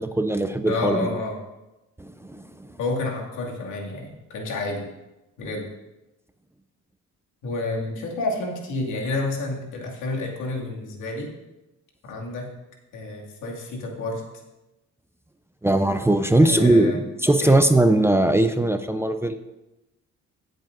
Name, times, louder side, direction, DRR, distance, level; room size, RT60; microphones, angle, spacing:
voice 1, 0.0-1.1 2.0-2.7 15.6-19.4, right 1 dB, 10° right, 8 dB, 0.6 m, -20 dB
voice 2, 0.6-1.4 2.8-4.9 5.4-5.7 7.4-11.3 12.0-12.5 12.9-14.2 16.4-17.0 17.4-17.6, left 2 dB, 85° left, -1 dB, 2.4 m, -29 dB
16.0 x 7.8 x 2.6 m, 0.99 s
cardioid pair, 90°, 30 cm